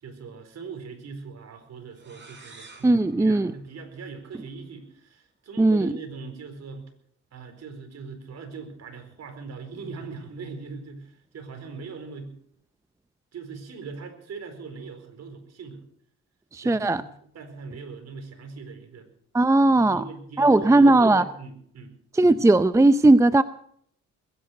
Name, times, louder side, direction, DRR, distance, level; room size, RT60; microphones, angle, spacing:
voice 1, 0.0-6.9 7.3-12.3 13.3-15.8 16.6-19.1 19.7-21.9, right 5 dB, 60° right, 6 dB, 4.5 m, -40 dB
sound 1, 1.9-4.5, right 3 dB, 40° right, 6.5 m, -51 dB
voice 2, 2.8-3.5 5.6-5.9 16.5-17.0 19.3-20.0 20.4-21.2 22.1-23.4, right 2 dB, 10° right, 13 dB, 0.6 m, -18 dB
21.5 x 10.5 x 6.4 m, 0.65 s
cardioid pair, 90°, 30 cm